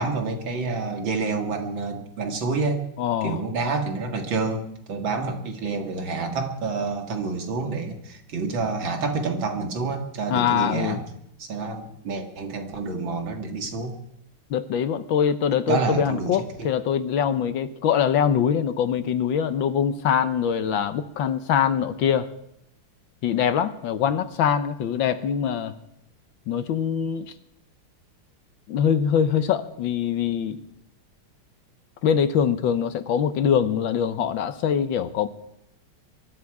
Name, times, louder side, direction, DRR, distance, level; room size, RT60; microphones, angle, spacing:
voice 1, 0.0-2.8 3.2-11.0 11.4-13.9 15.7-16.7, right 4 dB, 65° right, 4 dB, 2.5 m, -28 dB
voice 2, 3.0-3.4 10.3-11.0 14.5-22.3 23.2-25.7 26.5-27.3 28.7-30.6 32.0-35.3, left 8 dB, 70° left, 11 dB, 1.5 m, -23 dB
23.0 x 13.0 x 4.8 m, 0.78 s
omnidirectional pair, 2.4 m